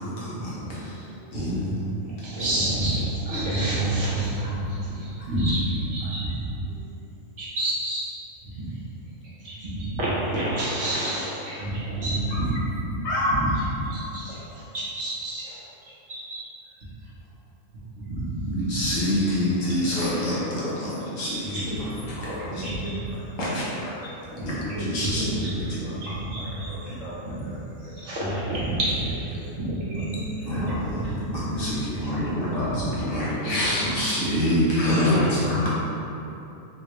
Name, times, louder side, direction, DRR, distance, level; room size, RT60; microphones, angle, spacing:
voice 1, 0.0-0.6 1.3-1.9 2.4-2.5 18.7-21.9 24.3-24.5 24.8-25.8 30.5-30.8 31.2-35.7, left 1 dB, 50° left, -9 dB, 1.0 m, -27 dB
voice 2, 0.7-1.4 5.2-5.3 6.0-6.1 12.3-12.6 13.0-13.5 19.0-21.0 21.5-21.6 22.1-24.6 25.7-27.9 29.4-29.5 30.0-30.1 30.4-31.1 32.1-33.6 34.8-35.7, left 1 dB, 80° left, -7 dB, 1.2 m, -33 dB
voice 3, 2.0-6.5 7.4-8.1 8.4-8.5 9.4-12.4 13.4-13.5 13.9-16.4 18.0-18.7 21.4-22.1 22.5-23.0 24.4-24.5 24.7-25.5 26.0-26.7 27.3-27.4 27.8-29.3 29.6-31.7 33.4-33.9, right 1 dB, 70° right, -8 dB, 1.2 m, -29 dB
3.5 x 2.3 x 3.0 m, 3.0 s
omnidirectional pair, 1.3 m